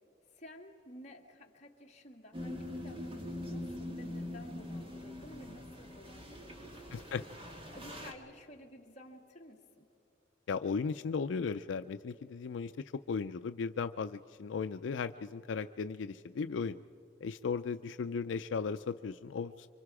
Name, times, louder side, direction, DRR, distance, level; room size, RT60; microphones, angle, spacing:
voice 1, 0.3-7.4 7.7-9.9 16.5-16.8, left 1 dB, 35° left, 0 dB, 2.0 m, -53 dB
sound 1, 2.3-8.1, left 1 dB, 30° right, 1.8 m, -43 dB
voice 2, 6.9-7.2 10.5-12.7 13.1-16.7 17.2-19.7, left 5 dB, 85° left, 11 dB, 0.4 m, -36 dB
27.5 x 24.5 x 4.8 m, 2.7 s
head